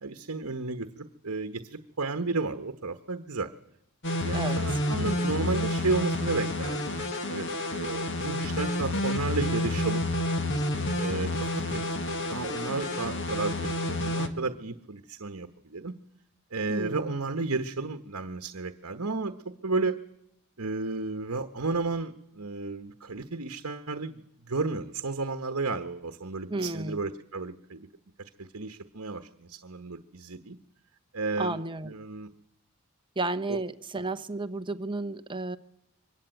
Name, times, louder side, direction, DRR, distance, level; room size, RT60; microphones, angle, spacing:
voice 1, 0.0-3.5 4.1-7.5 7.7-10.1 11.0-15.9 16.5-20.0 20.6-27.9 28.4-30.6 31.1-31.6 31.8-32.3 33.5-33.6, right 3 dB, 70° right, 7 dB, 1.2 m, -33 dB
sound 1, 4.0-14.3, left 1 dB, 55° left, 1.8 m, -29 dB
voice 2, 4.3-5.1 16.7-17.2 26.5-27.0 31.4-32.0 33.2-35.6, right 2 dB, 20° right, 10 dB, 1.0 m, -33 dB
24.0 x 21.5 x 9.2 m, 0.78 s
head